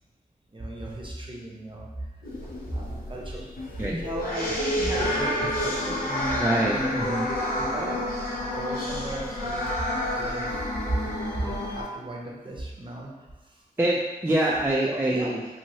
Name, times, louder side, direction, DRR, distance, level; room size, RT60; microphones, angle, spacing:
voice 1, 0.5-2.1 2.7-3.8 4.0-7.2 7.6-8.1 8.4-9.7 10.1-10.5 11.3-13.6 14.9-15.3, right 1 dB, 30° right, -2 dB, 0.8 m, -36 dB
sound 1, 2.2-11.8, left 1 dB, 65° left, 0.7 m, -29 dB
voice 2, 6.4-7.3 13.8-15.6, right 1 dB, 15° right, -5 dB, 0.4 m, -25 dB
3.0 x 2.7 x 2.7 m, 1.1 s
cardioid pair, 40°, 16 cm